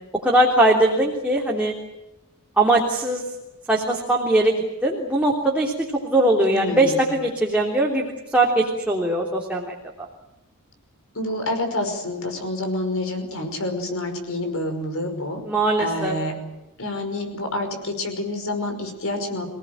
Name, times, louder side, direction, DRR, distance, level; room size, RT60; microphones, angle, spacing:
voice 1, 0.2-1.7 2.6-3.2 3.7-4.6 4.8-5.7 6.0-9.7 15.5-16.2, right 1 dB, 5° right, -2 dB, 3.4 m, -20 dB
voice 2, 6.5-7.0 11.2-15.4 15.8-16.3 16.8-19.5, left 1 dB, 65° left, 6 dB, 5.4 m, -28 dB
27.0 x 18.5 x 9.2 m, 0.97 s
head